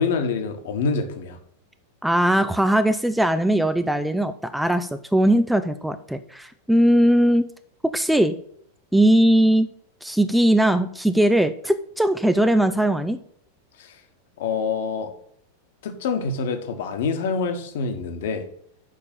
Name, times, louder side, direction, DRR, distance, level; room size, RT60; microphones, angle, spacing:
voice 1, 0.0-1.4 13.8-13.9 14.4-15.1 15.8-18.4, left 5 dB, 55° left, 7 dB, 1.3 m, -26 dB
voice 2, 2.0-7.5 7.8-8.4 8.9-9.7 10.0-13.2, right 1 dB, ahead, 11 dB, 0.4 m, -19 dB
6.5 x 5.3 x 7.0 m, 0.65 s
figure-of-eight pair, 90°, 0 cm